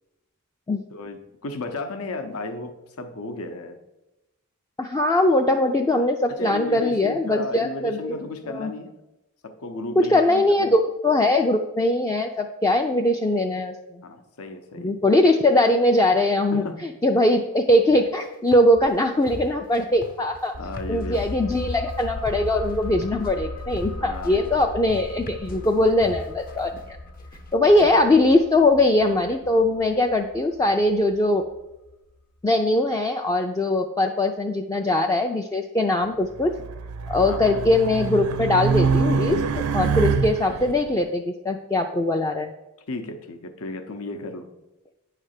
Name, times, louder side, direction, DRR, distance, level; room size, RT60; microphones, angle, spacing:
voice 1, 0.9-3.8 6.3-8.9 9.4-10.8 14.0-15.0 16.5-16.9 20.6-21.3 24.0-24.6 36.6-36.7 37.2-37.6 42.9-44.5, left 2 dB, 70° left, 8 dB, 0.8 m, -34 dB
voice 2, 4.8-8.1 8.5-8.7 10.0-14.0 14.8-20.5 20.9-27.0 27.5-31.4 32.4-36.5 37.1-42.5, left 1 dB, 15° left, 3 dB, 0.3 m, -21 dB
sound 1, 17.9-27.9, left 1 dB, 40° left, 0.9 m, -41 dB
sound 2, 20.5-31.9 32.2-32.3, left 2 dB, 85° left, 1.1 m, -37 dB
Race car auto racing, 36.4-40.7, right 5 dB, 75° right, 0.5 m, -25 dB
9.2 x 3.3 x 6.5 m, 0.97 s
head